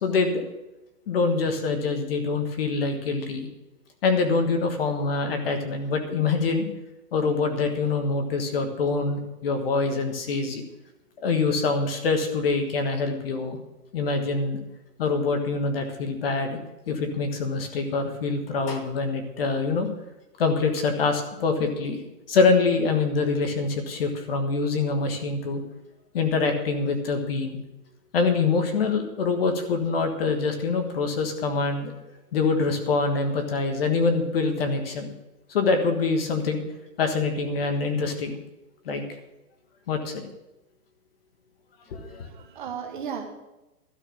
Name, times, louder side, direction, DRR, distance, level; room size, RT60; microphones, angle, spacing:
voice 1, 0.0-0.4 1.1-3.5 4.0-6.7 7.1-10.6 11.2-13.6 13.9-14.6 15.0-16.6 16.9-19.9 20.4-22.0 22.3-25.6 26.1-27.6 28.1-31.9 32.3-35.1 35.5-36.6 37.0-38.3 38.8-39.0 39.9-40.2 41.9-42.3, left 4 dB, 35° left, 6 dB, 1.5 m, -25 dB
voice 2, 42.0-43.3, right 7 dB, 30° right, 4 dB, 1.4 m, -35 dB
12.5 x 6.6 x 8.5 m, 0.98 s
hypercardioid pair, 175°, 48 cm